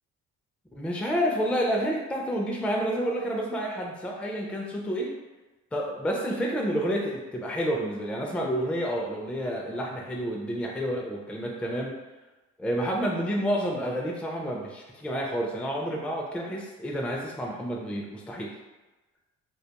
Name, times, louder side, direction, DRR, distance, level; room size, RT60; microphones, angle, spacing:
voice 1, 0.8-5.1 5.7-12.0 12.6-18.5, equal, 5° left, -1 dB, 0.4 m, -29 dB
2.4 x 2.2 x 2.8 m, 1.1 s
cardioid pair, 90°, 30 cm